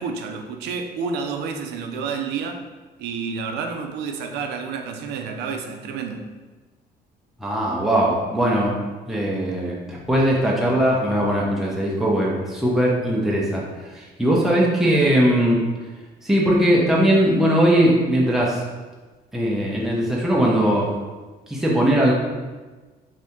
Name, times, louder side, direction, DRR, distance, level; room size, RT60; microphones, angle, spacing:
voice 1, 0.0-2.6 3.0-6.3, right 5 dB, 80° right, 4 dB, 0.4 m, -29 dB
voice 2, 7.4-8.8 9.1-13.6 13.9-15.6 16.2-18.6 19.3-20.9 21.5-22.1, right 1 dB, ahead, -4 dB, 0.6 m, -19 dB
2.7 x 2.7 x 3.4 m, 1.3 s
cardioid pair, 110°, 17 cm